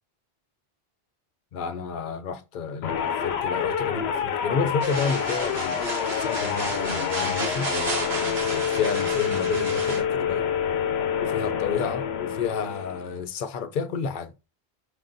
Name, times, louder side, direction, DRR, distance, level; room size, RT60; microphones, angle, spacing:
voice 1, 1.5-7.7 8.4-10.5 11.1-14.3, left 5 dB, 60° left, 0.7 m, -30 dB
sound 1, 2.8-13.2, left 7 dB, 90° left, 0.9 m, -27 dB
sound 2, 4.8-10.0, right 3 dB, 85° right, 1.4 m, -33 dB
5.0 x 3.8 x 2.5 m
omnidirectional pair, 1.0 m